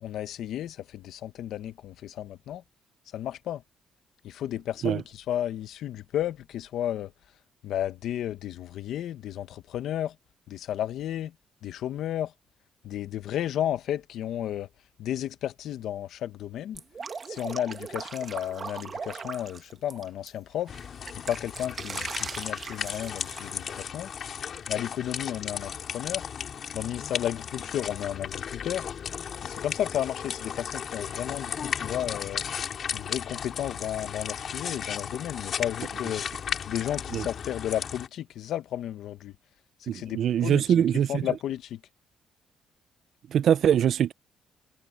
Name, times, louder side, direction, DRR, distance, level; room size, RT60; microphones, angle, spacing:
voice 1, 0.0-2.6 3.1-3.6 4.2-7.1 7.6-10.1 10.5-11.3 11.6-12.3 12.8-14.7 15.0-16.8 17.3-20.7 21.3-24.1 24.7-26.2 26.7-28.9 29.4-32.4 32.9-36.2 36.7-39.3 39.8-40.6 41.1-41.8, left 11 dB, 75° left, 1.2 m, -33 dB
Drip, 16.7-20.3 20.7-23.8, right 5 dB, 40° right, 1.5 m, -39 dB
sound 1, 20.7-38.1, left 7 dB, 55° left, 4.1 m, -35 dB
voice 2, 39.9-41.2 43.3-44.1, right 9 dB, 65° right, 0.6 m, -23 dB
cardioid pair, 90°, 0 cm